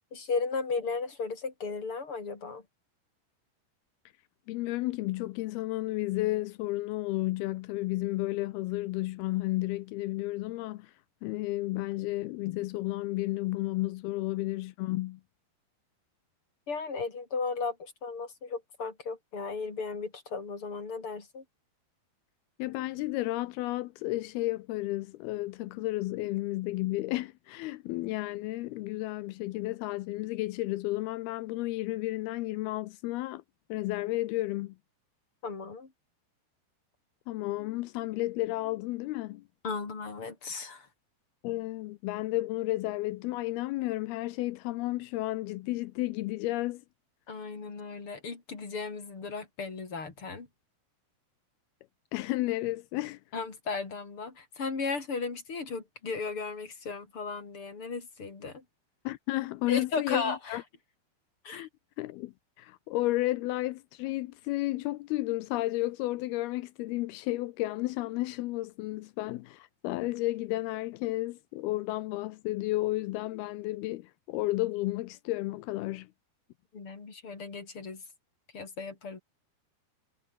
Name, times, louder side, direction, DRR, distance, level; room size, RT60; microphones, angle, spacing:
voice 1, 0.1-2.6 16.7-21.4 35.4-35.9 39.6-40.9 47.3-50.5 53.3-58.6 59.7-60.6 61.4-61.7 76.7-78.0 78.5-79.2, left 4 dB, 30° left, 4.4 m, -35 dB
voice 2, 4.5-10.9 11.2-15.2 22.6-33.4 33.7-34.8 37.3-39.4 41.4-46.8 52.1-53.2 59.1-60.6 61.5-61.7 62.0-76.1, left 18 dB, 80° left, 2.4 m, -32 dB
omnidirectional pair, 4.9 m